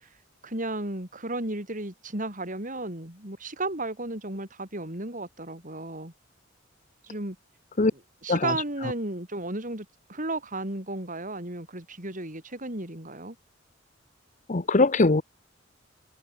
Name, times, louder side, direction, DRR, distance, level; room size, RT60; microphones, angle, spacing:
voice 1, 0.4-6.1 7.0-7.4 8.2-13.3, right 2 dB, 45° right, 6.5 m, -34 dB
voice 2, 14.5-15.2, left 3 dB, 40° left, 0.9 m, -21 dB
head